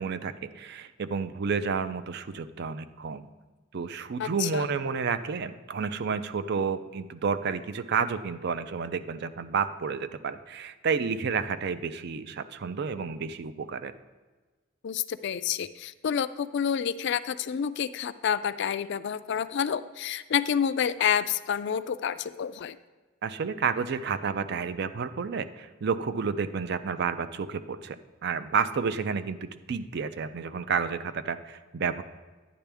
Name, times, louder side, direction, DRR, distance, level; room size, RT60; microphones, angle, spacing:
voice 1, 0.0-3.3 3.7-13.9 23.2-32.0, right 5 dB, 55° right, 12 dB, 0.5 m, -30 dB
voice 2, 4.2-4.7 14.8-22.8, left 8 dB, 60° left, 13 dB, 0.3 m, -29 dB
10.5 x 9.7 x 3.5 m, 1.3 s
head